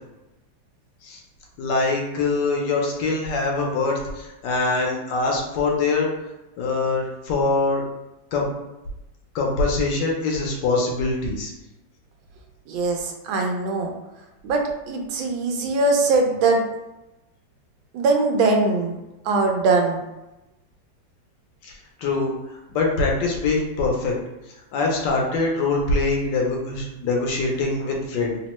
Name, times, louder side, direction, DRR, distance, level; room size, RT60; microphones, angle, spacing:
voice 1, 1.6-6.1 6.6-7.8 8.3-8.5 9.3-11.5 21.6-21.7 22.0-22.3 22.7-24.1 24.7-28.4, left 3 dB, 75° left, 0 dB, 1.2 m, -23 dB
voice 2, 12.7-13.9 14.4-16.6 17.9-18.9 19.2-20.0, right 3 dB, 90° right, 2 dB, 1.4 m, -21 dB
3.4 x 2.1 x 2.9 m, 0.97 s
omnidirectional pair, 2.1 m